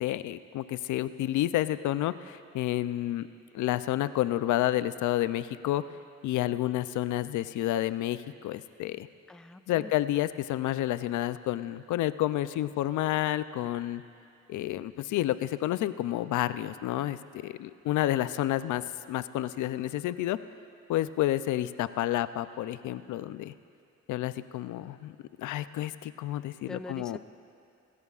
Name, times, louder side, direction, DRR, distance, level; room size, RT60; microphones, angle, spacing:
voice 1, 0.0-3.3 3.5-5.8 6.2-9.1 9.7-14.0 14.5-20.4 20.9-23.5 24.1-27.2, left 14 dB, 75° left, 14 dB, 0.5 m, -30 dB
voice 2, 9.3-9.9 26.6-27.2, left 2 dB, ahead, 11 dB, 0.3 m, -43 dB
25.5 x 13.5 x 2.4 m, 2.4 s
cardioid pair, 90°, 30 cm